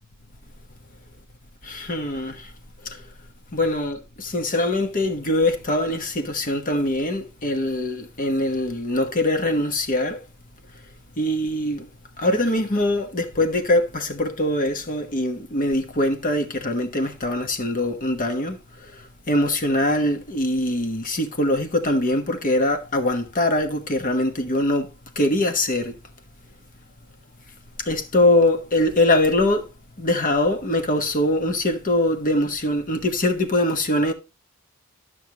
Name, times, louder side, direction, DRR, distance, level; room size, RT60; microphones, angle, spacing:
voice 1, 1.6-2.5 2.8-3.0 3.5-10.2 11.2-11.9 12.2-18.6 18.8-26.0 27.8-29.7 30.0-34.1, left 1 dB, 40° left, 1.2 m, -23 dB
11.5 x 6.3 x 3.0 m
head